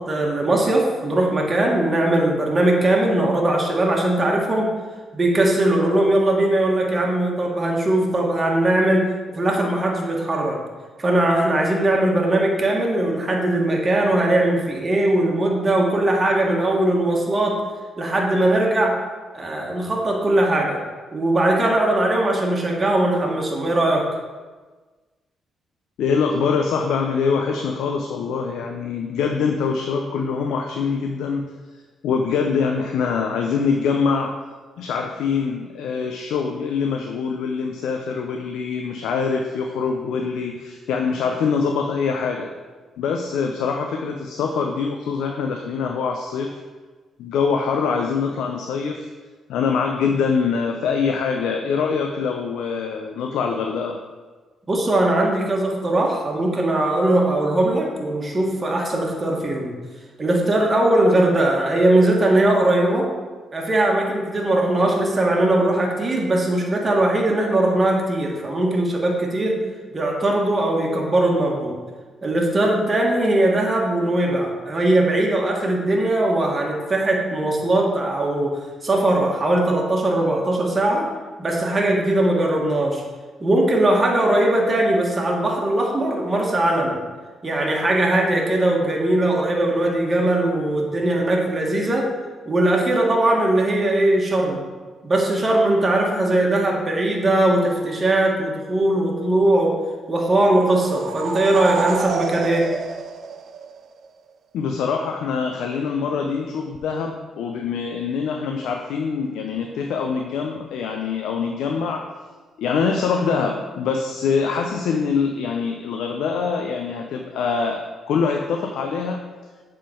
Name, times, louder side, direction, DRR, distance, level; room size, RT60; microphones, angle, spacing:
voice 1, 0.0-4.7 5.1-9.0 9.3-10.6 11.0-17.5 18.0-18.9 19.3-20.8 21.1-24.0 54.7-59.7 60.2-63.0 63.5-69.6 69.9-71.8 72.2-78.5 78.8-81.0 81.4-83.0 83.4-87.0 87.4-92.0 92.4-94.6 95.0-99.7 100.1-102.6, right 1 dB, 30° right, -1 dB, 1.5 m, -20 dB
voice 2, 26.0-31.4 32.0-34.3 34.8-42.5 43.0-46.5 47.2-49.1 49.5-54.0 104.5-112.1 112.6-119.2, left 5 dB, 85° left, 3 dB, 0.5 m, -24 dB
sound 1, 100.5-104.0, right 5 dB, 65° right, 0.5 m, -29 dB
7.5 x 3.8 x 4.3 m, 1.4 s
cardioid pair, 75°, 0 cm